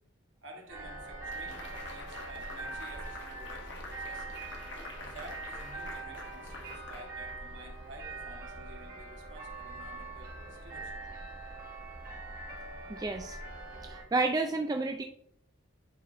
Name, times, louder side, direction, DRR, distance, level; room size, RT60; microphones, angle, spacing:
voice 1, 0.4-4.4 5.0-11.0, right 2 dB, 65° right, -1 dB, 1.7 m, -51 dB
sound 1, 0.7-14.0, right 2 dB, 45° right, 1.7 m, -43 dB
sound 2, 1.3-7.7, left 3 dB, 55° left, 1.2 m, -47 dB
voice 2, 12.9-13.4 13.8-15.0, right 3 dB, 20° right, 4 dB, 0.3 m, -30 dB
9.3 x 4.0 x 3.9 m, 0.73 s
head